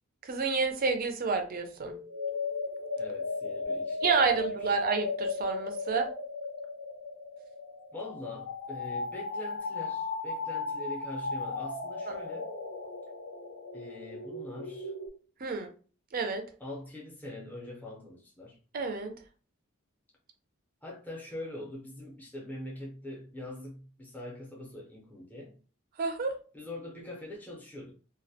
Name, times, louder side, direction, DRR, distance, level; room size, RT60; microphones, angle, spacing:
voice 1, 0.2-1.9 4.0-6.1 15.4-15.7 16.1-16.4 18.7-19.1 26.0-26.3, right 4 dB, 40° right, 0.4 m, -29 dB
sound 1, 1.8-15.1, left 3 dB, 75° left, 0.8 m, -36 dB
voice 2, 3.0-4.7 7.9-12.5 13.7-14.9 16.6-18.6 20.8-25.6 26.5-27.9, left 1 dB, 10° left, 0.6 m, -43 dB
2.2 x 2.1 x 2.7 m
head